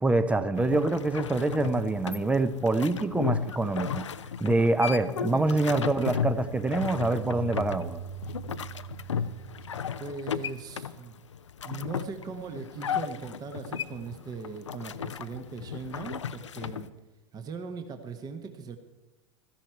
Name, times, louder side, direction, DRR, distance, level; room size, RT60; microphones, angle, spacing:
voice 1, 0.0-4.1 4.4-8.0, right 2 dB, 10° right, 14 dB, 0.8 m, -25 dB
sound 1, 0.6-16.9, left 7 dB, 75° left, 0.6 m, -35 dB
sound 2, 5.0-10.6, right 4 dB, 40° left, 1.1 m, -43 dB
voice 2, 5.3-5.8 10.0-11.2 11.6-16.9 17.3-18.8, right 5 dB, 25° right, 7 dB, 1.3 m, -39 dB
16.0 x 14.0 x 4.6 m, 1.1 s
figure-of-eight pair, 90°, 15 cm